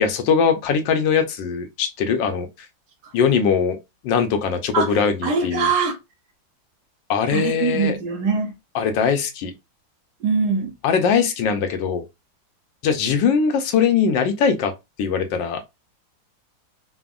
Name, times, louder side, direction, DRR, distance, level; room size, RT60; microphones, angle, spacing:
voice 1, 0.0-2.5 3.1-3.8 4.0-5.7 7.1-8.0 8.7-9.5 10.8-12.0 12.8-14.7 15.0-15.6, left 6 dB, 75° left, 1.3 m, -21 dB
voice 2, 4.7-6.0 7.3-8.6 10.2-10.7, right 5 dB, 70° right, 1.0 m, -23 dB
3.5 x 2.0 x 2.3 m
omnidirectional pair, 2.1 m